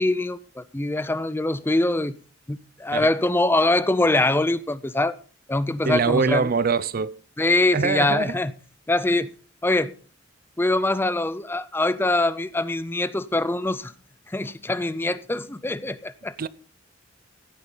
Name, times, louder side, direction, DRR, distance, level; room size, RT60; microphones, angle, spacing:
voice 1, 0.0-2.1 2.5-5.1 5.5-6.5 7.4-8.5 8.9-9.3 9.6-9.9 10.6-13.9 14.3-16.4, left 2 dB, 10° left, 0.5 m, -23 dB
voice 2, 5.9-7.2 7.7-8.4 16.4-16.5, right 5 dB, 45° right, 0.5 m, -23 dB
15.5 x 8.9 x 3.8 m
head